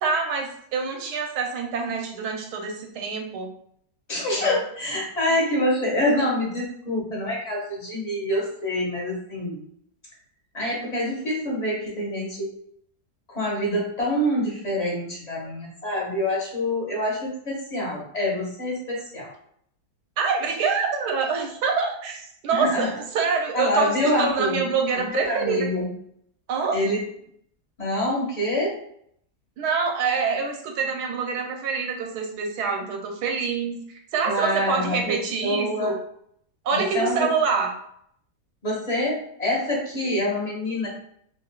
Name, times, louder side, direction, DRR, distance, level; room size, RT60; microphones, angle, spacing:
voice 1, 0.0-3.5 4.4-4.6 20.2-25.7 26.5-26.8 29.6-33.8 34.1-35.9 36.6-37.7, right 5 dB, 90° right, 2 dB, 1.2 m, -26 dB
voice 2, 4.1-9.6 10.5-12.5 13.3-19.3 22.5-22.9 23.5-24.6 24.9-25.9 26.7-27.0 27.8-28.7 34.2-35.2 35.4-35.9 36.7-37.3 38.6-40.9, left 1 dB, 30° left, -4 dB, 1.0 m, -26 dB
3.6 x 2.5 x 2.2 m, 0.69 s
omnidirectional pair, 1.7 m